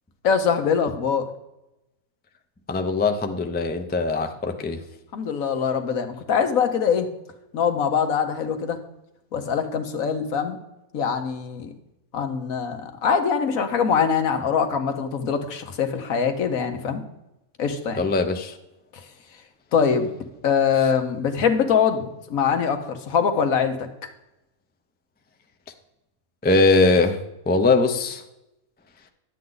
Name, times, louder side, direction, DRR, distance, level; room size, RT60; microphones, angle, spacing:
voice 1, 0.2-1.3 5.1-7.1 7.5-8.8 9.3-10.6 10.9-11.7 12.1-17.0 17.6-18.0 18.9-19.0 19.7-20.1 20.4-23.9, left 6 dB, 75° left, 6 dB, 1.4 m, -23 dB
voice 2, 2.7-4.8 18.0-18.6 26.4-27.2 27.5-28.2, left 3 dB, 15° left, 5 dB, 0.4 m, -21 dB
11.0 x 8.3 x 3.9 m, 0.92 s
omnidirectional pair, 1.5 m